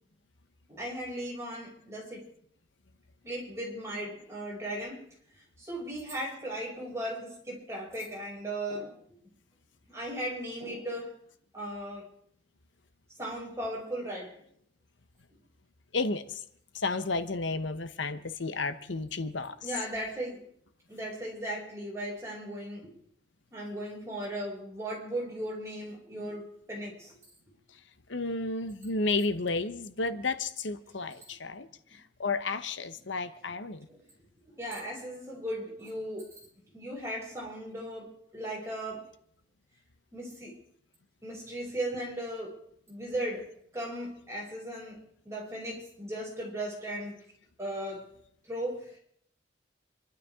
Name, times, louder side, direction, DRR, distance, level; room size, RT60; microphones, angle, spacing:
voice 1, 0.7-2.3 3.2-5.0 5.6-8.9 9.9-11.1 11.5-12.1 13.2-14.3 19.6-20.4 20.9-22.9 23.5-27.2 33.9-34.0 34.5-36.3 36.7-39.1 40.1-40.6 41.2-42.5 42.9-43.5 43.7-45.0 45.2-47.1 47.6-48.1 48.5-49.0, right 1 dB, 15° right, -5 dB, 6.5 m, -37 dB
voice 2, 15.9-16.4 16.7-19.5 28.1-31.7 32.2-33.8, left 3 dB, 80° left, 10 dB, 1.0 m, -32 dB
27.5 x 12.5 x 3.7 m, 0.66 s
head